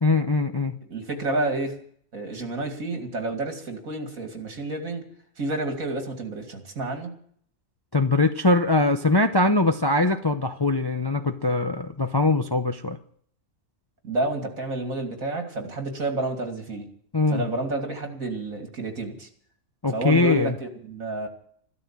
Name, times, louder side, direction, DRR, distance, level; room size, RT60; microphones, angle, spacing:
voice 1, 0.0-0.7 7.9-13.0 17.1-17.4 19.8-20.5, left 2 dB, 25° left, 6 dB, 0.5 m, -22 dB
voice 2, 0.9-1.7 2.1-5.0 5.4-7.1 14.0-16.9 17.3-19.3 19.9-21.3, right 2 dB, 70° right, 3 dB, 3.0 m, -30 dB
13.5 x 13.0 x 7.5 m, 0.62 s
omnidirectional pair, 1.5 m